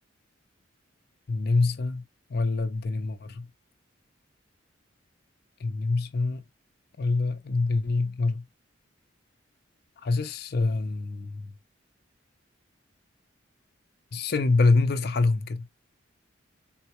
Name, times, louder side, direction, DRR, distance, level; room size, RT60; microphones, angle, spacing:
voice 1, 1.3-2.0 2.3-3.5 5.6-6.4 7.0-8.4 10.0-11.5 14.1-15.7, left 3 dB, 50° left, 0.5 m, -25 dB
3.9 x 2.1 x 2.9 m
head